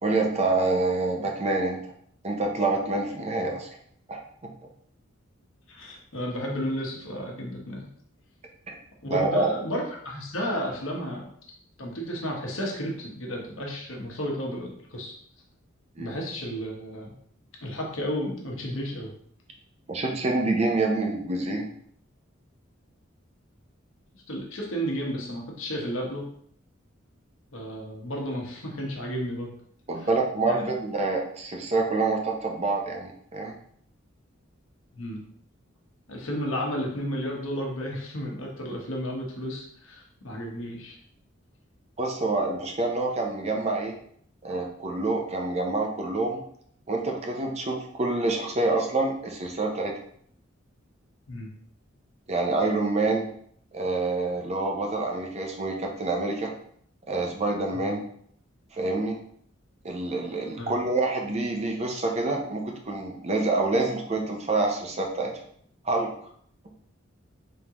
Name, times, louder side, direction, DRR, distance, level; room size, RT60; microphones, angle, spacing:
voice 1, 0.0-1.8 2.2-3.7 4.1-4.2 9.1-9.5 16.0-16.2 19.9-21.6 29.9-33.5 42.0-43.9 44.4-46.4 46.9-49.9 52.3-53.3 53.7-56.5 57.1-58.0 58.7-59.1 59.8-65.3 65.8-66.1, right 2 dB, 35° right, 1 dB, 0.6 m, -27 dB
voice 2, 5.7-7.9 9.0-11.2 11.8-15.1 16.0-17.1 17.6-19.1 24.3-26.2 27.5-29.5 30.0-30.1 30.5-30.7 34.9-35.2 36.1-41.0 51.3-51.5 57.7-57.9 60.6-60.8, equal, 85° left, -1 dB, 1.1 m, -32 dB
3.8 x 3.6 x 2.9 m, 0.64 s
head